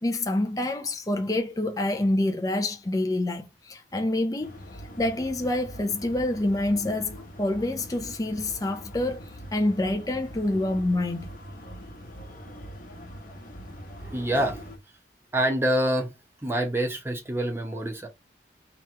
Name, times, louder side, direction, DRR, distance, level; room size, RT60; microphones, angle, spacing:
voice 1, 0.0-4.6 5.0-9.2 9.5-11.3, left 1 dB, 20° left, 0.5 m, -27 dB
sound 1, 4.4-14.8, equal, 45° left, 1.1 m, -43 dB
voice 2, 14.0-14.7 15.3-16.1 16.4-18.1, right 1 dB, 15° right, 1.0 m, -26 dB
3.2 x 3.0 x 4.5 m
head